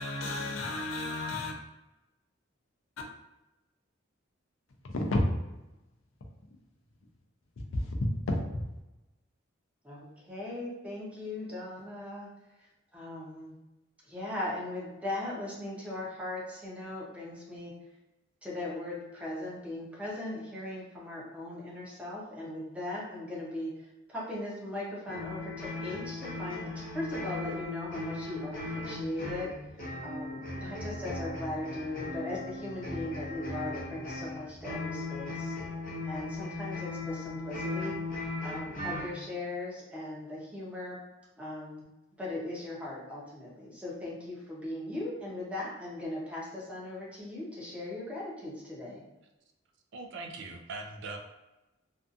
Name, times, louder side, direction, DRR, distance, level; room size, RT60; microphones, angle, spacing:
voice 1, 0.0-1.5 4.9-5.2 7.6-8.6, left 1 dB, 80° left, 0.5 m, -31 dB
voice 2, 9.8-12.3 12.6-13.6 14.1-17.7 18.4-29.5 30.0-35.5 36.0-37.9 38.4-41.0 41.4-41.8 42.2-49.0, left 2 dB, 5° right, 0.6 m, -38 dB
sound 1, 25.1-39.2, left 2 dB, 45° left, 0.7 m, -38 dB
voice 3, 49.9-51.2, right 3 dB, 60° right, 0.4 m, -41 dB
2.6 x 2.3 x 2.4 m
head